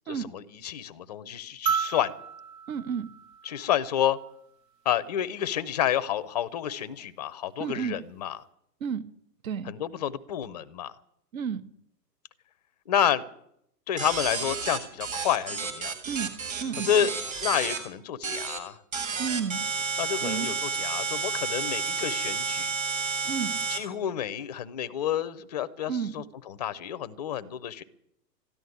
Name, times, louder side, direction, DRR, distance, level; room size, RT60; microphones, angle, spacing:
voice 1, 0.1-2.1 3.4-4.2 4.8-8.4 9.6-10.9 12.9-13.2 13.9-16.0 16.8-17.1 17.4-18.8 20.0-22.8 23.7-27.8, left 10 dB, 25° left, 0.6 m, -29 dB
sound 1, 1.7-4.2 5.8-5.9, right 7 dB, 75° right, 1.5 m, -33 dB
voice 2, 2.7-3.1 7.6-8.0 8.8-9.1 9.4-9.7 11.3-11.7 16.1-16.3 16.6-16.9 19.2-20.5 23.2-23.6 25.9-26.2, right 7 dB, 55° right, 1.3 m, -32 dB
sound 2, 14.0-17.8 18.2-18.6 18.9-23.8, right 5 dB, 15° right, 1.7 m, -31 dB
14.0 x 11.5 x 9.3 m
hypercardioid pair, 150°, 50 cm